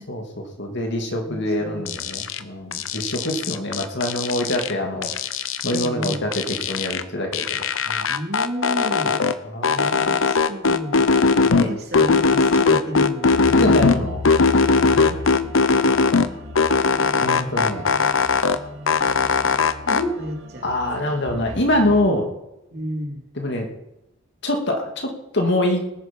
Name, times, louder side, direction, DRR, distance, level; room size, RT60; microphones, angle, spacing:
voice 1, 0.1-5.1 5.6-7.4 7.9-8.0 9.0-9.2 9.4-10.1 11.5-11.7 13.6-14.2 14.9-15.2 17.2-17.9 19.9-20.1 20.6-22.3 23.4-23.7 24.4-25.8, left 1 dB, 60° left, 3 dB, 2.4 m, -24 dB
voice 2, 1.2-1.8 5.7-6.2 8.1-9.2 10.1-11.1 11.6-14.0 20.2-20.7 22.7-23.2, equal, 55° right, 0 dB, 2.9 m, -31 dB
sound 1, 1.9-2.4 2.7-4.7 5.0-7.0 7.3-9.3 9.6-11.7 11.9-14.0 14.3-16.3 16.6-18.6 18.9-20.0, left 4 dB, 85° left, 0.8 m, -19 dB
sound 2, 13.3-22.0, left 2 dB, 75° right, 2.3 m, -35 dB
19.0 x 9.1 x 5.4 m, 0.93 s
head